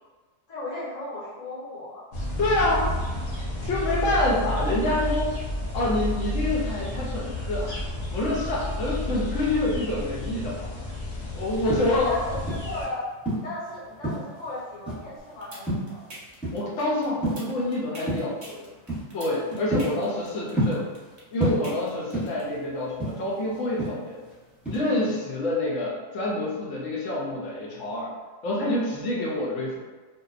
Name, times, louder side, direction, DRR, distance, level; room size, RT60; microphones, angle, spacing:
voice 1, 0.5-2.0 11.7-13.0 13.3-16.0, left 2 dB, 35° left, -9 dB, 0.9 m, -36 dB
sound 1, 2.1-12.9, left 1 dB, 55° left, 0.4 m, -31 dB
voice 2, 2.4-2.9 3.7-5.3 5.7-7.7 8.1-10.7 11.3-12.2 16.5-18.7 19.1-20.9 21.3-24.2 24.7-28.1 28.4-29.8, left 2 dB, 75° left, -4 dB, 1.0 m, -27 dB
sound 2, 11.5-12.8 13.2-14.4 14.9-15.2 15.7-16.8 17.1-17.6 18.1-18.4 18.9-19.1 19.5-21.1 21.4-22.5 22.8-24.3 24.7-25.0, right 1 dB, ahead, 0.8 m, -29 dB
sound 3, 15.4-22.4, right 2 dB, 45° right, 0.8 m, -43 dB
2.6 x 2.2 x 2.4 m, 1.3 s
omnidirectional pair, 1.3 m